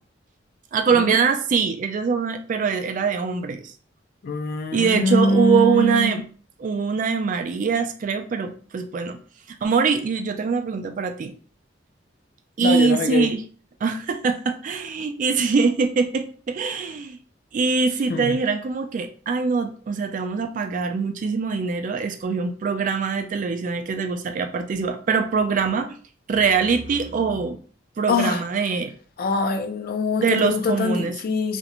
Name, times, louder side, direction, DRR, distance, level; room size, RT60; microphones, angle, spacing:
voice 1, 0.7-3.7 4.7-6.2 6.6-9.2 9.5-11.3 12.6-13.4 13.8-17.2 17.5-26.0 26.3-27.6 28.0-28.9 30.2-31.1, right 5 dB, 45° right, 7 dB, 0.3 m, -23 dB
voice 2, 4.2-6.2 12.6-13.3 18.1-18.4 28.1-28.4 29.2-31.6, left 2 dB, 55° left, 6 dB, 0.4 m, -23 dB
2.5 x 2.1 x 2.9 m, 0.42 s
head